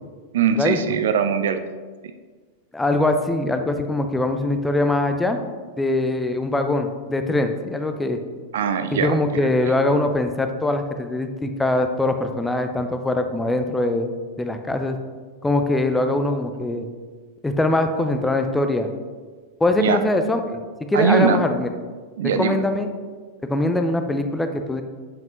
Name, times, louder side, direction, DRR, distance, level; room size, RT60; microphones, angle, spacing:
voice 1, 0.3-1.6 8.5-9.2 19.8-20.0 20.9-21.4 22.2-22.6, right 6 dB, 60° right, 8 dB, 0.4 m, -20 dB
voice 2, 2.7-5.4 5.8-8.2 8.9-15.0 15.4-16.9 17.4-18.9 19.6-20.4 20.9-21.7 22.4-22.9 23.5-24.8, left 2 dB, 10° left, 6 dB, 0.6 m, -22 dB
8.0 x 5.3 x 3.0 m, 1.5 s
figure-of-eight pair, 90°, 0 cm